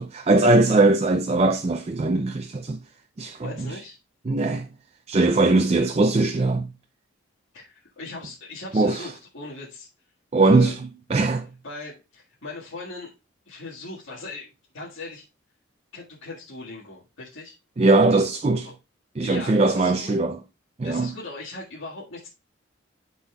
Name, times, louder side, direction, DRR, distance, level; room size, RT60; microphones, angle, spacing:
voice 1, 0.0-2.8 3.2-3.7 4.3-4.7 5.1-6.7 8.7-9.1 10.3-11.5 17.8-18.7 19.2-20.4 20.8-21.1, right 2 dB, 30° right, 0.4 m, -20 dB
voice 2, 3.4-4.0 7.5-9.9 10.4-10.8 11.6-13.1 13.5-15.2 15.9-17.6 19.2-20.1 20.8-22.3, left 2 dB, 80° left, 1.7 m, -39 dB
12.5 x 4.2 x 2.3 m
head